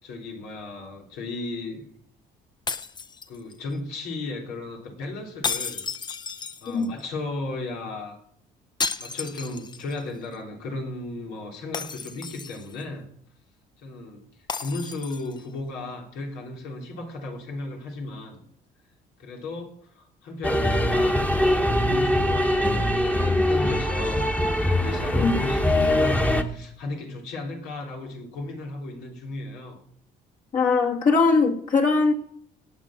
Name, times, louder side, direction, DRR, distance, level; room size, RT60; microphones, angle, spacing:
voice 1, 0.0-1.9 3.3-5.8 6.6-8.2 9.0-13.1 13.8-14.2 14.6-18.4 19.2-24.3 24.6-29.8, left 2 dB, 90° left, 0 dB, 3.6 m, -35 dB
sound 1, 2.7-3.7 5.4-7.0 8.8-10.0 10.3-10.4 11.7-12.8 14.5-15.4, left 5 dB, 25° left, 0.7 m, -33 dB
sound 2, 20.4-26.4, left 1 dB, 10° left, 1.2 m, -22 dB
voice 2, 30.5-32.1, left 4 dB, 50° left, 0 dB, 2.2 m, -20 dB
17.5 x 7.5 x 6.1 m, 0.65 s
cardioid pair, 110°, 17 cm